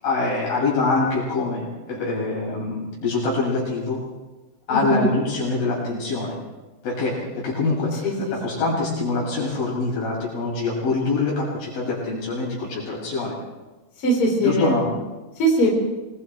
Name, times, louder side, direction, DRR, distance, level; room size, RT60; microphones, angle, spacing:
voice 1, 0.0-4.0 4.7-6.4 6.8-13.4 14.4-14.8, left 3 dB, 75° left, -4 dB, 8.5 m, -24 dB
voice 2, 4.7-5.1 8.0-8.7 14.0-14.7 15.4-15.7, right 1 dB, 40° left, -2 dB, 5.1 m, -21 dB
27.5 x 21.0 x 4.6 m, 1.2 s
omnidirectional pair, 4.2 m